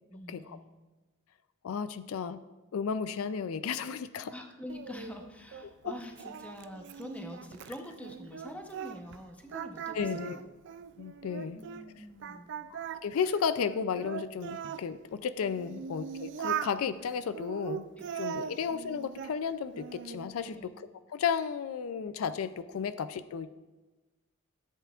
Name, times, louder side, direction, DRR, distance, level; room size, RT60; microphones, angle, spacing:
voice 1, 0.1-0.7 4.3-10.4 11.4-12.5 18.4-18.6 20.3-20.7, left 1 dB, 5° left, 3 dB, 0.8 m, -45 dB
voice 2, 1.6-2.4 2.7-4.3 5.8-5.9 9.9-10.4 11.0-11.6 12.7-17.9 18.1-23.5, left 6 dB, 80° left, 13 dB, 0.4 m, -33 dB
Singing, 4.7-9.2 9.5-11.9 12.2-14.8 15.4-16.8 17.3-19.4 19.7-20.3, right 8 dB, 55° right, 0.4 m, -40 dB
13.5 x 8.1 x 2.4 m, 1.2 s
head